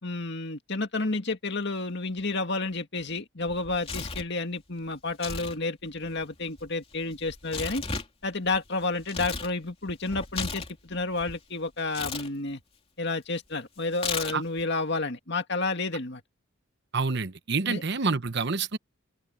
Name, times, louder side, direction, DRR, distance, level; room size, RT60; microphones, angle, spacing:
voice 1, 0.0-7.8 8.2-12.6 13.0-16.2 17.7-17.8, left 3 dB, 55° left, 2.2 m, -30 dB
Tearing, 3.5-4.3 5.1-5.6 5.8-9.5 9.9-11.4 11.9-12.3 13.9-14.6, left 4 dB, 25° left, 2.9 m, -35 dB
voice 2, 16.9-18.8, right 4 dB, 50° right, 1.0 m, -27 dB
head